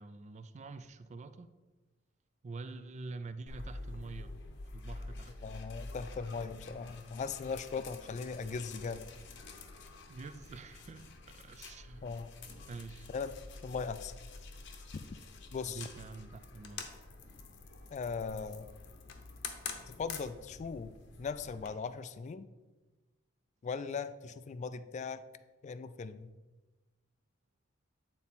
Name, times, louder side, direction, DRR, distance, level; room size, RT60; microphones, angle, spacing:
voice 1, 0.0-1.5 2.4-4.3 4.7-5.3 10.1-12.1 12.7-13.1 15.7-16.8, right 3 dB, 35° right, 11 dB, 0.4 m, -46 dB
sound 1, 3.5-21.7, left 4 dB, 65° left, 0.8 m, -48 dB
voice 2, 5.4-9.1 12.0-12.3 13.1-13.3 13.6-14.1 15.5-15.9 17.9-18.7 19.9-20.9 21.2-22.5 23.6-25.2 25.6-26.3, left 5 dB, 35° left, 13 dB, 0.3 m, -39 dB
8.9 x 4.1 x 4.2 m, 1.2 s
head